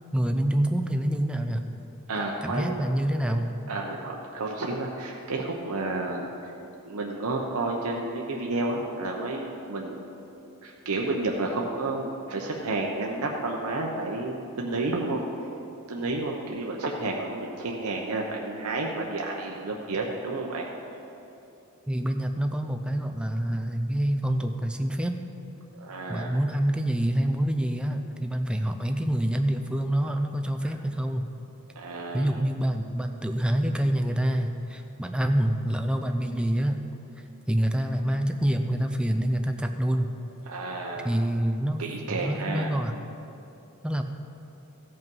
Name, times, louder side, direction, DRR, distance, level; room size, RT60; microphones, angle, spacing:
voice 1, 0.1-1.6 2.4-3.5 21.9-25.2 26.1-31.3 32.1-36.8 37.5-40.1 41.0-41.8 42.1-42.9 43.8-44.0, right 1 dB, 5° right, 5 dB, 0.4 m, -26 dB
voice 2, 2.1-2.8 3.7-6.5 6.8-10.1 10.6-15.2 15.9-20.6 25.8-26.3 31.8-32.3 40.5-41.1 41.8-42.7, right 2 dB, 80° right, -1 dB, 0.8 m, -31 dB
15.5 x 5.5 x 5.4 m, 2.8 s
head